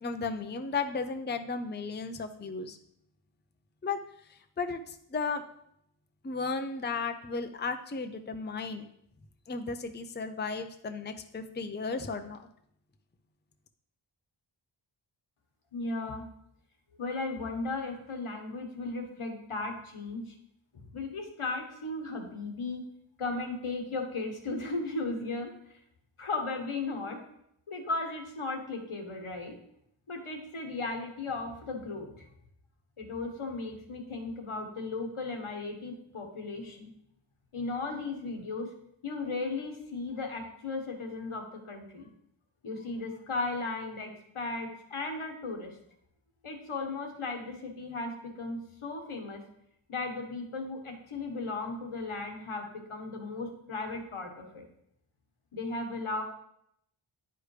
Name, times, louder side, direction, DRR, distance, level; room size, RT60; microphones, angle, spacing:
voice 1, 0.0-2.8 3.8-4.0 4.6-5.4 6.2-8.8 9.5-12.4, left 4 dB, 20° left, 7 dB, 0.5 m, -34 dB
voice 2, 15.7-16.2 17.0-20.4 20.7-22.8 23.2-25.5 26.2-27.2 27.7-29.5 30.1-32.3 33.0-36.9 37.5-38.7 39.0-42.1 42.6-45.8 46.4-49.4 49.9-54.6 55.5-56.2, left 3 dB, 80° left, 3 dB, 1.4 m, -36 dB
9.6 x 4.9 x 3.2 m, 0.74 s
wide cardioid pair, 55°, 50 cm